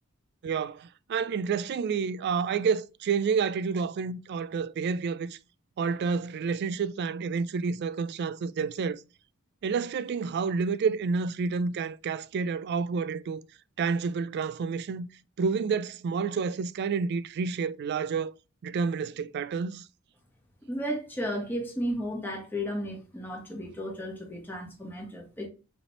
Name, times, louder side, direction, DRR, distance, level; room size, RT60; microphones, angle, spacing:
voice 1, 0.4-5.4 5.8-9.0 9.6-13.4 13.8-15.1 15.4-18.3 18.6-19.8, right 5 dB, 50° right, 0.3 m, -29 dB
voice 2, 20.7-25.5, equal, 10° left, 1.5 m, -34 dB
5.1 x 3.4 x 2.9 m
head